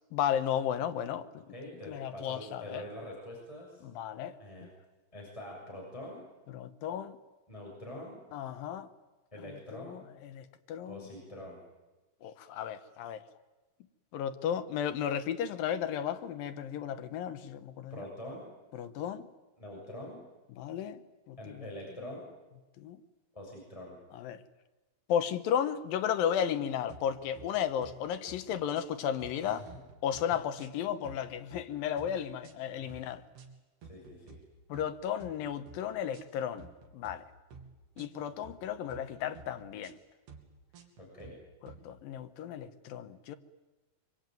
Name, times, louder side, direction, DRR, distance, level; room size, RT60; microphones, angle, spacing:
voice 1, 0.1-1.3 1.9-2.8 3.8-4.7 6.5-7.2 8.3-8.9 9.7-11.1 12.2-13.2 14.1-18.1 18.7-19.3 20.6-21.0 21.3-21.7 22.8-23.0 24.1-24.4 25.1-29.7 30.0-33.2 34.7-36.7 36.9-37.2 38.0-40.0 41.6-43.4, left 9 dB, 70° left, 2.6 m, -34 dB
voice 2, 1.5-3.8 4.4-4.7 5.1-6.2 7.5-8.2 9.3-10.0 10.9-11.6 17.9-18.5 19.6-20.2 21.4-22.3 23.3-24.0 29.4-29.6 30.3-30.4 32.8-33.1 33.9-34.4 41.0-41.4, left 1 dB, 5° left, 6.7 m, -45 dB
sound 1, 26.9-27.5 27.8-28.0 28.3-28.9 29.2-30.3 30.6-31.6 32.0-32.2 32.4-33.0 33.4-33.5 33.8-34.4 34.7-34.9 35.2-35.8 36.1-36.3 36.6-37.2 37.5-37.7 38.0-38.6 38.9-39.1 39.4-39.9 40.3-40.5 40.7-41.3 41.7-41.8, right 5 dB, 80° right, 4.6 m, -52 dB
24.0 x 23.5 x 9.2 m
omnidirectional pair, 4.7 m